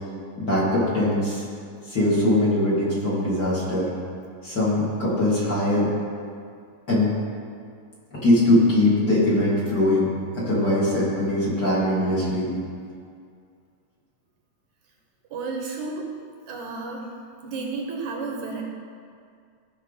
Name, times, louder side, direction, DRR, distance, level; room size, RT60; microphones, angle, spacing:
voice 1, 0.4-1.4 1.9-3.9 4.4-5.9 6.9-7.1 8.1-12.5, left 1 dB, 35° left, -8 dB, 2.9 m, -21 dB
voice 2, 15.3-17.1 17.4-18.6, right 4 dB, 70° right, 1 dB, 2.3 m, -32 dB
16.0 x 6.2 x 4.2 m, 2.3 s
omnidirectional pair, 3.7 m